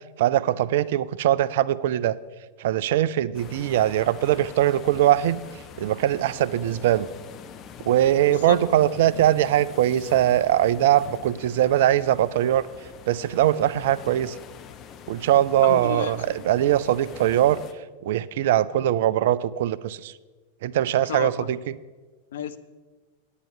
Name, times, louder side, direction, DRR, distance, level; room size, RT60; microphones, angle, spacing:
voice 1, 0.2-2.2 2.6-5.4 5.8-7.1 7.8-12.6 13.1-14.4 15.1-17.6 18.0-20.1 20.6-21.7, right 12 dB, 55° right, 18 dB, 0.4 m, -21 dB
sound 1, 3.3-17.7, left 7 dB, 30° left, 0.9 m, -44 dB
voice 2, 15.6-16.2 21.1-21.5 22.3-22.6, left 8 dB, 60° left, 10 dB, 0.7 m, -31 dB
9.8 x 8.9 x 5.7 m, 1.3 s
figure-of-eight pair, 90°, 0 cm